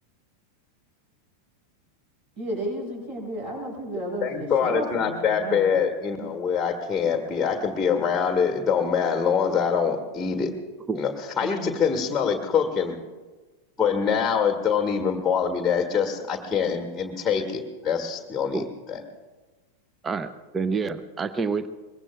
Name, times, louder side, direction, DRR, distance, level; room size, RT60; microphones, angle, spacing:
voice 1, 2.4-5.2 5.4-5.8 6.2-6.3 11.4-11.7, right 1 dB, 45° right, 0 dB, 6.4 m, -33 dB
voice 2, 4.2-10.5 11.0-11.1 11.4-13.0 13.8-19.0, left 6 dB, 15° left, 3 dB, 1.6 m, -24 dB
voice 3, 20.0-21.7, right 4 dB, 20° right, 13 dB, 0.6 m, -28 dB
23.0 x 22.0 x 2.4 m, 1.3 s
figure-of-eight pair, 90°, 0 cm